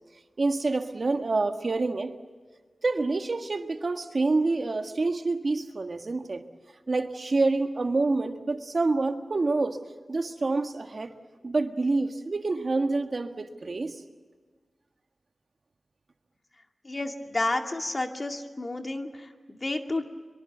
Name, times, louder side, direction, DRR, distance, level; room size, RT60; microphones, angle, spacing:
voice 1, 0.4-2.1 2.8-6.4 6.9-9.8 10.1-11.1 11.4-14.0, right 3 dB, 55° right, 6 dB, 1.6 m, -27 dB
voice 2, 16.8-20.0, left 2 dB, 40° left, 4 dB, 2.3 m, -31 dB
23.5 x 23.5 x 8.0 m, 1.4 s
wide cardioid pair, 65°, 0 cm